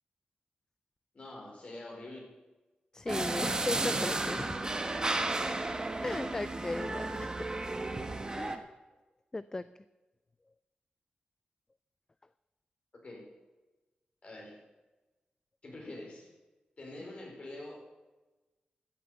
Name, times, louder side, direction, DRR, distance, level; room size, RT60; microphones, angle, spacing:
voice 1, 1.1-2.3 12.9-13.3 14.2-14.6 15.6-16.3 16.8-17.8, left 2 dB, 45° left, -1 dB, 4.8 m, -45 dB
voice 2, 2.9-4.7 6.0-7.4 8.3-8.7 9.3-9.6, left 2 dB, 20° left, 15 dB, 0.3 m, -37 dB
sound 1, 3.1-8.6, right 2 dB, 25° right, 1.2 m, -33 dB
13.5 x 7.8 x 8.1 m, 1.2 s
wide cardioid pair, 100°, 3 cm